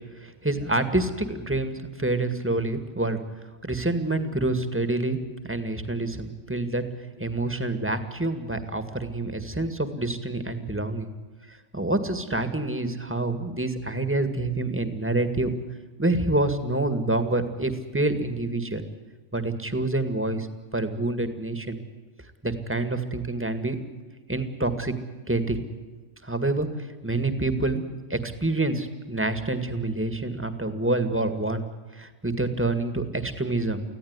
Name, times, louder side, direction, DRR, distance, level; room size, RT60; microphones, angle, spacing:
voice 1, 0.2-3.2 3.7-5.2 5.5-6.8 7.2-11.1 11.7-15.5 16.0-18.8 19.3-20.5 20.7-21.8 22.4-23.8 24.3-24.9 25.3-25.6 26.2-26.7 27.0-27.8 28.1-31.7 32.0-33.8, right 2 dB, 10° right, 9 dB, 1.9 m, -27 dB
25.0 x 16.0 x 9.7 m, 1.4 s
omnidirectional pair, 1.6 m